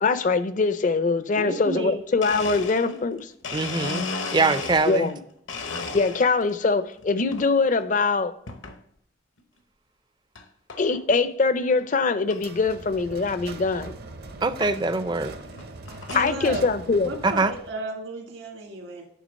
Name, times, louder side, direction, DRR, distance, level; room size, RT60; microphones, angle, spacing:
voice 1, 0.0-3.3 4.9-5.2 5.9-8.3 10.8-13.9 16.1-17.2, left 4 dB, 40° left, 12 dB, 0.5 m, -23 dB
voice 2, 1.4-2.0 16.1-16.7 17.0-19.1, right 1 dB, 75° right, 1 dB, 1.8 m, -33 dB
Domestic sounds home sounds, 2.2-5.1 5.5-6.5 7.0-7.5 8.5-8.8 9.4-9.5 10.3-10.4 10.7-11.0 11.5-11.6 11.7-11.8 12.3-12.4 13.7-13.8 14.6-14.8 15.4-16.3, left 3 dB, 70° left, 0.9 m, -34 dB
voice 3, 3.5-5.1 14.4-15.4 17.2-17.5, right 3 dB, 20° right, 12 dB, 0.4 m, -23 dB
sound 1, 12.3-17.8, right 2 dB, 50° right, 0.7 m, -41 dB
9.2 x 3.8 x 5.3 m, 0.70 s
head